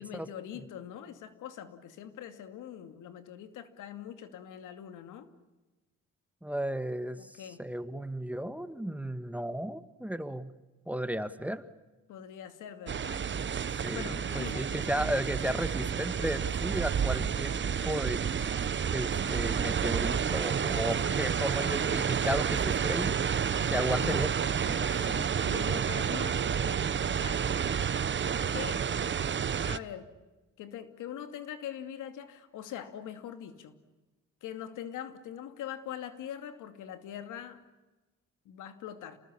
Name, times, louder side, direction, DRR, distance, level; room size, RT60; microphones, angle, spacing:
voice 1, 0.0-5.3 7.2-7.6 12.1-13.3 13.9-14.8 15.8-15.9 23.7-24.3 24.8-27.4 28.5-28.8 29.7-30.1 30.6-33.7 34.4-37.6 38.4-39.2, left 10 dB, 85° left, 9 dB, 2.6 m, -43 dB
voice 2, 6.4-10.5 10.9-11.6 13.8-18.2 18.9-23.2 23.7-24.3 24.7-24.8, right 1 dB, 5° right, 12 dB, 1.5 m, -34 dB
sound 1, 12.9-29.8, right 7 dB, 40° right, 1.0 m, -30 dB
29.0 x 20.0 x 8.7 m, 1.1 s
cardioid pair, 90°, 30 cm